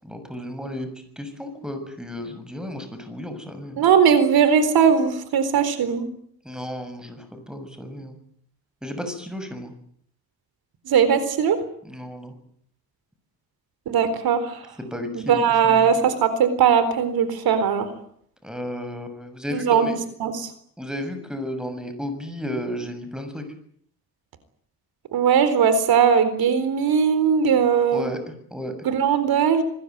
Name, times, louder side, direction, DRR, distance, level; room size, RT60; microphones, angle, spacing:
voice 1, 0.0-0.9 1.2-3.8 6.4-8.2 8.8-9.7 11.8-12.3 14.9-15.9 18.4-20.0 20.8-23.4 27.9-28.7, left 1 dB, ahead, 8 dB, 6.7 m, -33 dB
voice 2, 3.8-6.1 10.9-11.6 13.9-14.6 15.1-17.9 19.5-19.9 20.2-20.5 25.1-28.1 28.8-29.6, right 7 dB, 85° right, 12 dB, 4.1 m, -19 dB
26.5 x 21.0 x 9.5 m, 0.64 s
cardioid pair, 145°, 36 cm